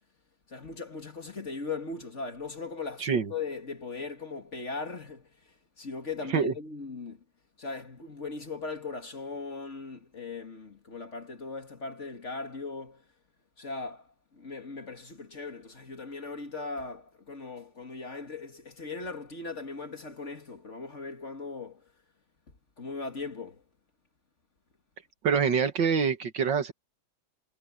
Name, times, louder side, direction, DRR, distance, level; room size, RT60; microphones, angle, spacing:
voice 1, 0.5-5.3 5.8-7.2 7.6-13.0 13.6-14.1 14.3-21.8 22.8-23.6, left 4 dB, 35° left, 2.2 m, -38 dB
voice 2, 3.0-3.3 6.3-6.5 25.2-26.7, right 6 dB, 70° right, 2.2 m, -25 dB
omnidirectional pair, 2.2 m